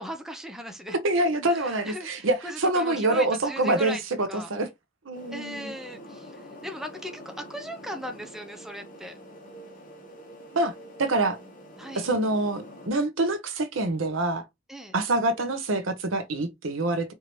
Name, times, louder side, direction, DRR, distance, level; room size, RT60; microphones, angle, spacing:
voice 1, 0.0-1.0 1.5-4.0 4.3-4.5 5.3-9.2 11.8-12.1 14.7-14.9, equal, ahead, 0.6 m, -38 dB
voice 2, 0.9-2.4 2.6-4.7 5.1-5.7 10.5-10.7 11.0-11.4 11.9-14.4 14.9-17.1, right 2 dB, 75° right, 0.9 m, -26 dB
sound 1, 5.1-12.9, equal, 45° left, 1.3 m, -46 dB
4.6 x 2.8 x 3.0 m
head